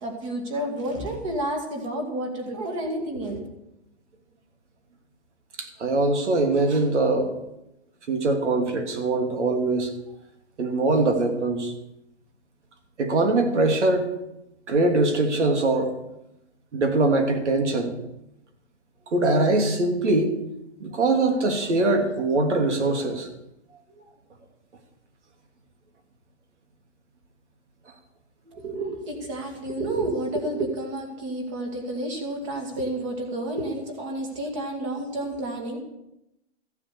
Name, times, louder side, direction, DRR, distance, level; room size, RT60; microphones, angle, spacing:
voice 1, 0.0-3.4 28.6-35.8, right 1 dB, 25° right, 3 dB, 2.3 m, -30 dB
voice 2, 5.6-7.3 8.1-9.9 10.6-11.7 13.0-14.1 14.7-15.9 16.7-17.9 19.1-20.3 20.8-23.3, right 2 dB, 90° right, 4 dB, 2.9 m, -22 dB
14.5 x 7.8 x 6.9 m, 0.88 s
hypercardioid pair, 175°, 34 cm